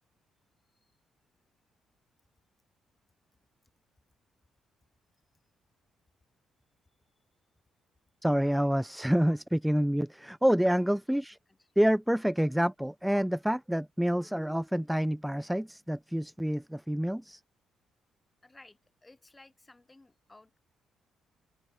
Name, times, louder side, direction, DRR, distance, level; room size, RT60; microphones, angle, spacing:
voice 1, 8.2-11.4 11.8-17.4, equal, 5° right, 0.5 m, -27 dB
voice 2, 10.8-11.7 18.4-20.6, left 2 dB, 15° left, 4.4 m, -57 dB
cardioid pair, 90°, 0 cm